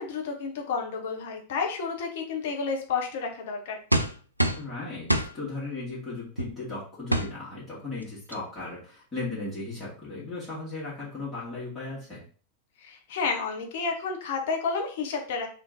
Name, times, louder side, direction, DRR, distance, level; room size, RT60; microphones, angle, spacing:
voice 1, 0.0-3.8 12.8-15.5, left 5 dB, 55° left, 2 dB, 1.0 m, -31 dB
sound 1, 3.9-4.7 5.1-5.3 6.4-6.5 7.1-7.3 8.0-8.1 8.3-8.6, right 1 dB, 90° right, 0.4 m, -25 dB
voice 2, 4.5-12.2, left 3 dB, 20° left, -9 dB, 2.2 m, -36 dB
3.6 x 3.1 x 3.9 m, 0.40 s
figure-of-eight pair, 90°, 0 cm